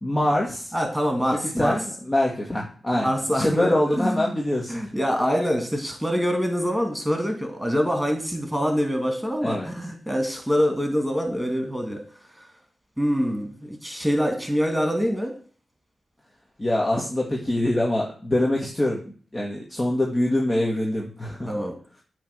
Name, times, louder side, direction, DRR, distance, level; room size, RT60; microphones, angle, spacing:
voice 1, 0.0-0.7 1.3-3.1 3.4-4.8 9.4-9.7 16.6-19.0 19.3-21.5, left 1 dB, 25° left, -2 dB, 1.7 m, -24 dB
voice 2, 0.7-1.8 2.9-4.3 4.7-12.0 13.0-15.3 21.5-21.7, equal, ahead, 4 dB, 2.5 m, -25 dB
8.6 x 3.3 x 6.2 m, 0.42 s
cardioid pair, 50°, 0 cm